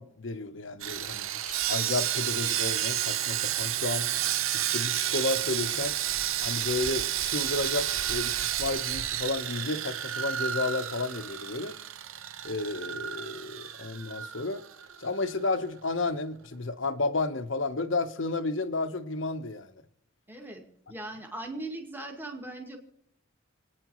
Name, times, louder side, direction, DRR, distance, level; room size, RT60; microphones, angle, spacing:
voice 1, 0.0-4.1 4.5-6.0 6.4-11.7 12.4-14.6 15.0-19.7, left 3 dB, 70° left, 1.0 m, -32 dB
Sawing, 0.8-15.1 15.3-15.5 16.0-16.1, right 11 dB, 85° right, 0.7 m, -31 dB
voice 2, 20.3-20.6 20.9-22.8, right 2 dB, 10° right, 2.0 m, -39 dB
28.5 x 9.6 x 3.1 m
head